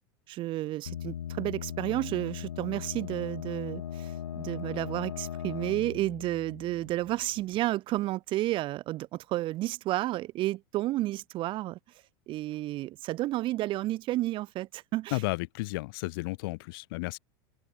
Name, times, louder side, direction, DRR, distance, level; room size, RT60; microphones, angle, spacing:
voice 1, 0.3-11.8 12.3-15.2, right 16 dB, 40° right, 0.5 m, -31 dB
sound 1, 0.9-7.5, left 9 dB, 90° left, 0.7 m, -39 dB
voice 2, 15.1-17.2, left 23 dB, 65° left, 1.3 m, -33 dB
hypercardioid pair, 100°, 13 cm